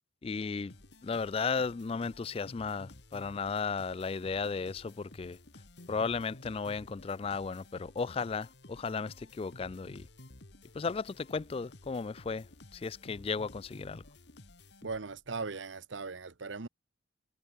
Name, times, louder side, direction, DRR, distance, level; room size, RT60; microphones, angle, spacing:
voice 1, 0.2-0.7 1.0-5.4 5.9-10.1 10.7-12.5 12.7-14.0, left 5 dB, 30° left, 0.3 m, -35 dB
sound 1, 0.7-15.3, left 2 dB, 60° left, 2.1 m, -54 dB
voice 2, 14.8-16.7, right 4 dB, 80° right, 1.0 m, -39 dB
head